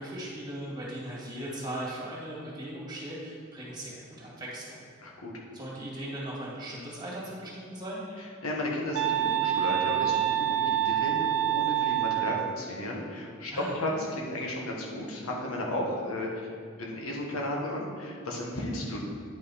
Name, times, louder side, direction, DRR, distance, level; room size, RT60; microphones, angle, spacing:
voice 1, 0.0-4.8 5.5-8.0 13.5-13.7, right 1 dB, 20° right, -5 dB, 2.0 m, -38 dB
voice 2, 5.0-5.4 8.2-16.5 16.8-19.0, left 1 dB, 90° left, -2 dB, 1.4 m, -34 dB
sound 1, 8.9-12.6, right 12 dB, 65° right, 0.4 m, -27 dB
9.4 x 5.6 x 4.2 m, 2.2 s
head